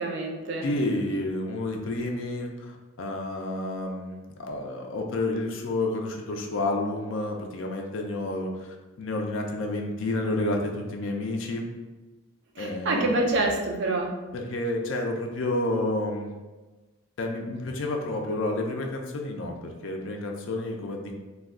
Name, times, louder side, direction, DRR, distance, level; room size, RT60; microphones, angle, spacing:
voice 1, 0.0-0.7 12.6-14.1, right 2 dB, 55° right, 0 dB, 0.4 m, -26 dB
voice 2, 0.6-4.2 4.5-11.7 12.6-13.2 14.3-16.4 17.2-21.1, left 2 dB, 60° left, 2 dB, 0.4 m, -30 dB
2.3 x 2.2 x 3.5 m, 1.2 s
head